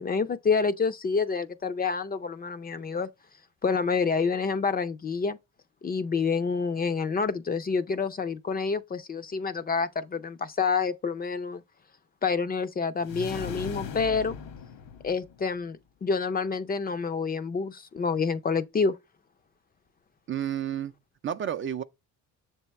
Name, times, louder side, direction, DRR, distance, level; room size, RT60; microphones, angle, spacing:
voice 1, 0.0-3.1 3.6-5.4 5.8-11.6 12.2-14.4 15.0-19.0, left 5 dB, 25° left, 0.5 m, -28 dB
sound 1, 13.0-15.6, left 6 dB, 75° left, 1.2 m, -38 dB
voice 2, 20.3-20.9 21.2-21.8, right 9 dB, 35° right, 0.4 m, -30 dB
6.8 x 3.4 x 4.1 m
cardioid pair, 95°, 34 cm